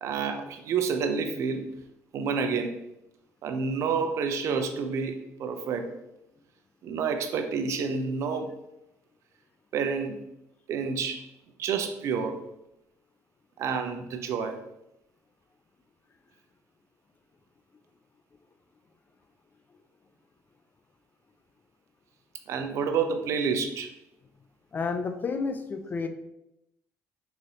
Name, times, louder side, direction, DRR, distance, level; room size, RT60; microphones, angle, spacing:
voice 1, 0.0-1.7 2.1-2.8 3.4-5.9 6.8-8.5 9.7-10.2 10.7-11.3 11.6-12.4 13.6-14.6 22.5-23.9, right 5 dB, 60° right, 7 dB, 0.5 m, -29 dB
voice 2, 24.7-26.1, left 4 dB, 35° left, 8 dB, 0.4 m, -30 dB
3.9 x 3.1 x 2.8 m, 0.85 s
cardioid pair, 90°, 6 cm